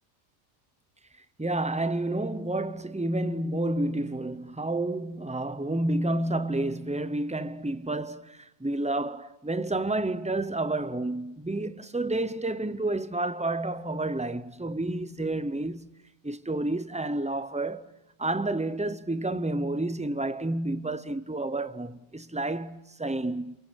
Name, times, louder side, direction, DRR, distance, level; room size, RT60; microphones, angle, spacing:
voice 1, 1.4-15.9 16.2-23.6, right 2 dB, 5° right, 0.6 m, -30 dB
29.0 x 28.0 x 6.3 m
omnidirectional pair, 1.4 m